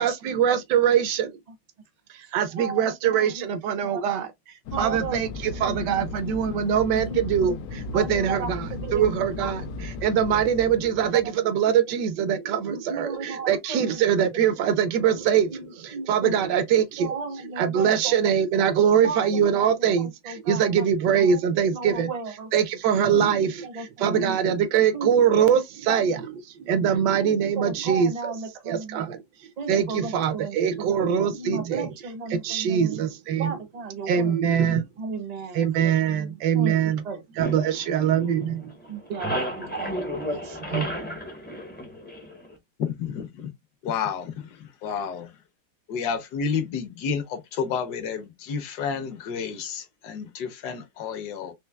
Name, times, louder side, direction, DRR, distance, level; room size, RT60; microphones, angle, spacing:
voice 1, 0.0-1.3 2.1-4.3 4.8-9.6 10.0-17.2 17.6-22.1 22.5-26.3 26.6-28.1 28.7-29.2 29.7-31.9 32.3-33.5 34.1-34.8 35.5-37.0 37.4-38.7 40.7-40.9, right 8 dB, 75° right, 1.2 m, -23 dB
voice 2, 2.6-3.5 3.8-4.1 4.7-5.2 5.7-6.0 7.1-7.2 7.9-9.2 9.4-9.6 11.0-11.3 12.7-14.0 15.5-16.4 17.0-18.2 18.9-20.9 21.2-22.5 23.1-24.4 24.9-25.1 25.9-26.2 27.2-29.1 29.6-30.9 31.4-33.0 33.4-34.4 35.0-35.7 36.1-36.7 37.0-37.2 38.9-39.9 40.3-40.6, right 4 dB, 40° right, 0.5 m, -35 dB
Fixed-wing aircraft airplane, 4.7-11.3, left 2 dB, 90° left, 1.3 m, -35 dB
sound 1, 37.4-38.6 38.8-42.5, equal, 15° left, 0.3 m, -32 dB
voice 3, 42.8-43.5 43.8-45.3 45.9-51.5, left 6 dB, 70° left, 1.3 m, -30 dB
4.4 x 3.1 x 2.2 m
omnidirectional pair, 1.9 m